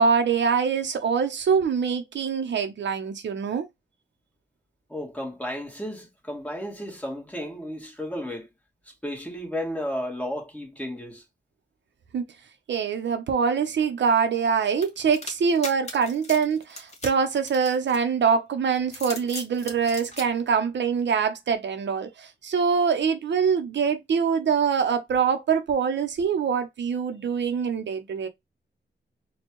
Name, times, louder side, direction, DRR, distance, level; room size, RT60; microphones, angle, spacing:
voice 1, 0.0-3.7 12.1-12.2 12.7-28.3, right 6 dB, 75° right, 0.7 m, -24 dB
voice 2, 4.9-8.5 8.8-11.2, equal, 5° left, 1.6 m, -33 dB
sound 1, 14.8-18.3 18.8-20.3, left 2 dB, 35° left, 1.7 m, -38 dB
4.3 x 2.3 x 3.1 m
wide cardioid pair, 125°, 19 cm